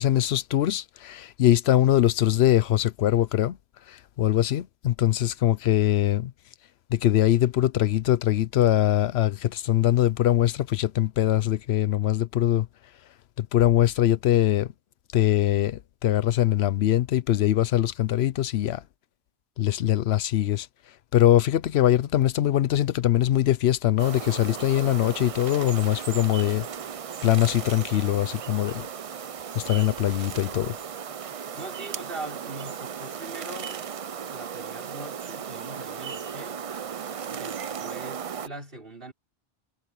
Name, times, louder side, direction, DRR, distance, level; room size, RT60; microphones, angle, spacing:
voice 1, 0.0-3.6 3.9-6.3 6.9-12.7 13.4-14.7 15.1-18.8 19.6-20.7 21.1-26.7 27.2-28.9 29.5-30.8, left 12 dB, 85° left, 0.9 m, -22 dB
sound 1, 24.0-38.5, right 7 dB, 45° right, 0.5 m, -36 dB
voice 2, 31.6-33.8 34.3-36.7 37.3-39.1, right 2 dB, 60° right, 6.0 m, -41 dB
omnidirectional pair, 1.0 m